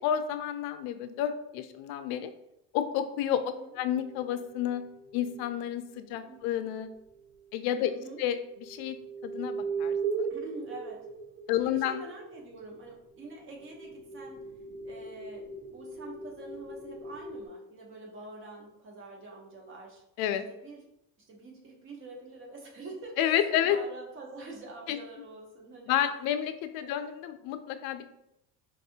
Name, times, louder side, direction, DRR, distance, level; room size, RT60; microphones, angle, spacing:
voice 1, 0.0-2.3 2.7-3.4 3.8-4.8 5.1-6.9 7.5-7.9 8.2-8.4 8.7-9.0 9.2-10.3 11.5-12.0 20.2-20.4 23.2-23.8 24.9-25.0 25.9-28.1, left 10 dB, 65° left, 9 dB, 0.5 m, -30 dB
voice 2, 3.3-3.8 6.2-6.4 7.8-8.2 10.3-11.1 11.6-14.4 14.8-20.0 20.5-20.9 21.2-26.0 26.8-26.9, right 2 dB, 30° right, 0 dB, 0.8 m, -45 dB
sound 1, 3.8-5.5 7.1-7.2 8.5-12.2 13.1-17.5, right 5 dB, 70° right, 0.8 m, -38 dB
4.7 x 2.6 x 2.7 m, 0.82 s
cardioid pair, 165°, 39 cm